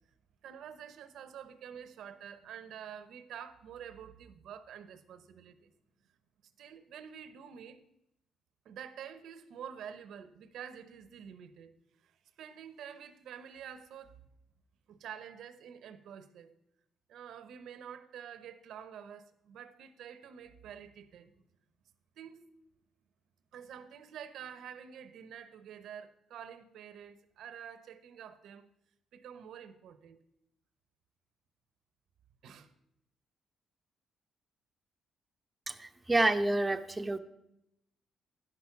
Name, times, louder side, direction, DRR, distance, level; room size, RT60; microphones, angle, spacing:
voice 1, 0.4-5.7 6.6-7.8 8.6-11.7 12.0-14.2 14.9-16.5 17.1-21.4 22.2-22.5 23.5-28.7 29.1-30.2 32.4-32.7, right 8 dB, 75° right, 12 dB, 0.7 m, -48 dB
voice 2, 35.7-37.2, right 2 dB, 20° right, 8 dB, 0.7 m, -29 dB
10.5 x 5.9 x 5.8 m, 0.81 s
cardioid pair, 90°, 0 cm